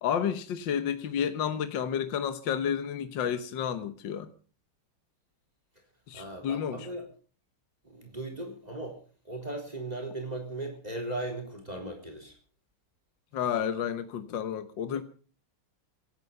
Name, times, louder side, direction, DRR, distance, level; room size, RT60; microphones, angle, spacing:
voice 1, 0.0-4.3 6.1-6.8 13.3-15.0, left 8 dB, 65° left, 1.7 m, -31 dB
voice 2, 6.1-7.1 7.8-12.4, right 2 dB, 20° right, 4.0 m, -38 dB
26.0 x 9.7 x 5.4 m
omnidirectional pair, 2.2 m